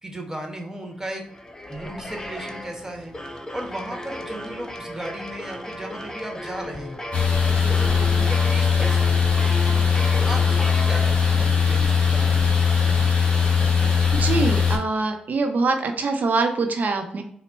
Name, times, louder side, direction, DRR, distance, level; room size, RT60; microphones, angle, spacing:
voice 1, 0.0-1.2 1.7-3.1 3.5-7.0 7.4-9.2 10.1-12.5 12.9-13.0, right 1 dB, 15° right, 2 dB, 1.3 m, -35 dB
sound 1, 1.1-11.5, left 1 dB, 20° left, 0.6 m, -35 dB
sound 2, 7.1-14.8, left 6 dB, 35° left, 1.5 m, -20 dB
voice 2, 14.1-17.2, right 3 dB, 60° right, 5 dB, 0.7 m, -24 dB
4.2 x 2.1 x 4.3 m, 0.69 s
supercardioid pair, 40°, 3 cm